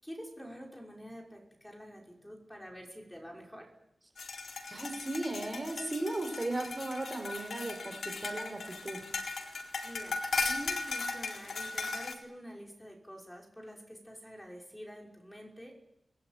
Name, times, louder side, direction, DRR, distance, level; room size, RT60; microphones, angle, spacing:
voice 1, 0.0-3.7 9.8-15.8, equal, 5° left, 0 dB, 5.7 m, -47 dB
sound 1, 4.2-12.1, left 4 dB, 75° left, 4.2 m, -37 dB
voice 2, 4.7-9.0, right 2 dB, 25° right, 5 dB, 4.4 m, -36 dB
28.5 x 21.0 x 9.2 m, 0.83 s
wide cardioid pair, 135°, 0 cm